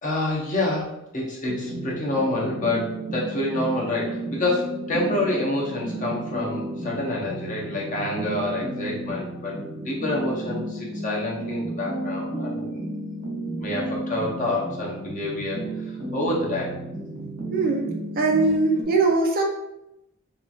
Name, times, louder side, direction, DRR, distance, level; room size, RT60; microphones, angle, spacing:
voice 1, 0.0-12.8 13.6-16.8 18.4-18.5, left 2 dB, 40° left, -3 dB, 0.7 m, -28 dB
sound 1, 1.5-18.8, right 1 dB, 90° right, 0.8 m, -33 dB
voice 2, 17.5-17.9 18.2-19.4, right 3 dB, 45° right, 2 dB, 0.4 m, -21 dB
2.9 x 2.4 x 2.4 m, 0.86 s
head